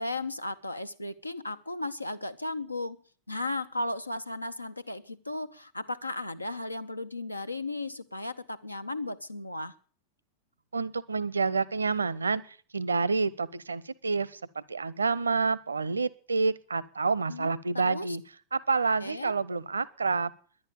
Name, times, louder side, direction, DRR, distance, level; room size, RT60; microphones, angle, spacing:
voice 1, 0.0-3.0 3.3-9.8 17.3-18.2 19.0-19.3, left 2 dB, 85° left, 13 dB, 0.8 m, -35 dB
voice 2, 10.7-18.2 18.5-20.3, right 4 dB, 75° right, 22 dB, 0.7 m, -28 dB
11.0 x 11.0 x 8.8 m, 0.43 s
figure-of-eight pair, 90°, 0 cm